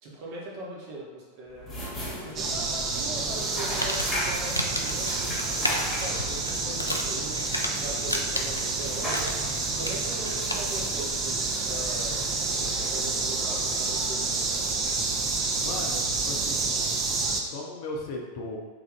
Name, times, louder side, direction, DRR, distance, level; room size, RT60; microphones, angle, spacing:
voice 1, 0.0-1.7 2.2-2.5 2.9-5.6 6.0-7.4 7.7-9.3 9.7-12.3 12.9-14.3, right 1 dB, 45° right, -3 dB, 0.9 m, -40 dB
sound 1, 1.5-17.6, left 1 dB, 15° left, 1.1 m, -39 dB
sound 2, 2.4-17.4, right 3 dB, 30° right, 0.5 m, -29 dB
Crumpling crinkling, 3.5-10.9, left 1 dB, 85° left, 0.3 m, -34 dB
voice 2, 15.6-16.7 17.5-18.6, left 2 dB, 45° left, 0 dB, 0.6 m, -36 dB
3.3 x 2.5 x 3.7 m, 1.3 s
figure-of-eight pair, 90°, 0 cm